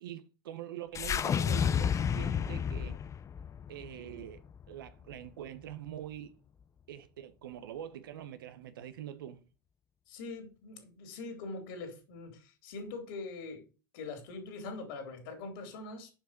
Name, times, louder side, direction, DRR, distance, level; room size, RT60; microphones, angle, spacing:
voice 1, 0.0-3.0 3.7-6.4 6.9-9.4, right 11 dB, 80° right, 1.0 m, -44 dB
sound 1, 0.9-5.3, left 8 dB, 25° left, 0.5 m, -32 dB
voice 2, 10.1-13.7 13.9-16.1, left 3 dB, 70° left, 4.0 m, -43 dB
7.2 x 5.9 x 5.1 m
hypercardioid pair, 90°, 11 cm